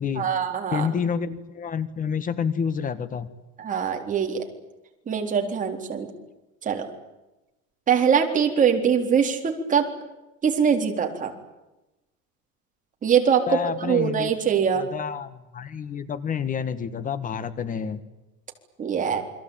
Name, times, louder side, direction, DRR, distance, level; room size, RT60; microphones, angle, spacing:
voice 1, 0.2-0.9 3.6-4.4 5.1-6.1 6.6-6.9 7.9-9.9 10.4-11.3 13.0-14.9 18.8-19.2, right 7 dB, 25° right, 3 dB, 4.1 m, -23 dB
voice 2, 0.7-3.3 13.5-14.3 14.8-18.0, left 7 dB, 30° left, 14 dB, 1.6 m, -28 dB
29.0 x 22.5 x 9.0 m, 1.0 s
cardioid pair, 155°, 29 cm